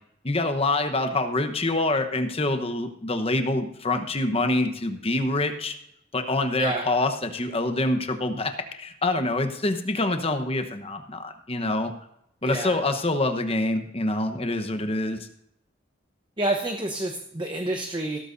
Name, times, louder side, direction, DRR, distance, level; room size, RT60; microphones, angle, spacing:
voice 1, 0.2-5.8 6.1-11.9 12.4-15.3, left 2 dB, 30° left, 7 dB, 1.0 m, -26 dB
voice 2, 6.6-6.9 12.4-12.8 16.4-18.2, right 1 dB, 25° right, 4 dB, 0.9 m, -28 dB
17.0 x 13.5 x 2.7 m, 0.77 s
head